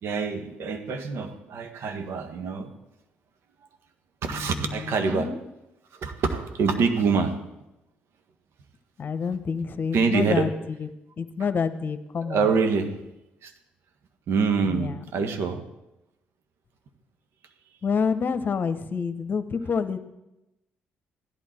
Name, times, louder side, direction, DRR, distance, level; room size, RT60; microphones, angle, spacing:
voice 1, 0.0-2.7 4.2-5.3 5.9-7.3 9.9-10.5 12.2-13.0 13.4-13.5 14.3-15.6, right 5 dB, 65° right, 7 dB, 1.5 m, -25 dB
voice 2, 4.2-5.4 9.0-10.9 11.2-12.5 14.7-15.0 17.8-20.0, left 5 dB, 50° left, 11 dB, 1.1 m, -28 dB
15.5 x 11.5 x 4.5 m, 0.93 s
supercardioid pair, 55°, 4 cm